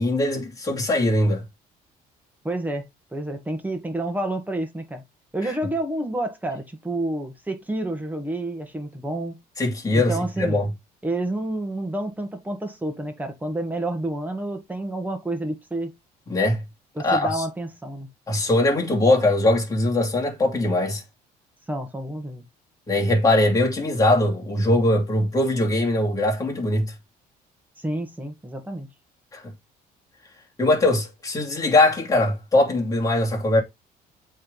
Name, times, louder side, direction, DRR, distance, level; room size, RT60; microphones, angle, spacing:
voice 1, 0.0-1.4 9.6-10.7 16.3-16.6 17.0-17.4 18.3-21.0 22.9-26.9 29.3-29.4 30.6-33.6, left 1 dB, 20° left, 2.8 m, -21 dB
voice 2, 2.4-5.0 5.3-9.4 9.9-10.6 11.0-15.9 17.0-18.1 21.7-22.4 27.8-28.9, right 1 dB, 10° right, 1.8 m, -29 dB
7.9 x 3.7 x 4.0 m
cardioid pair, 110°, 17 cm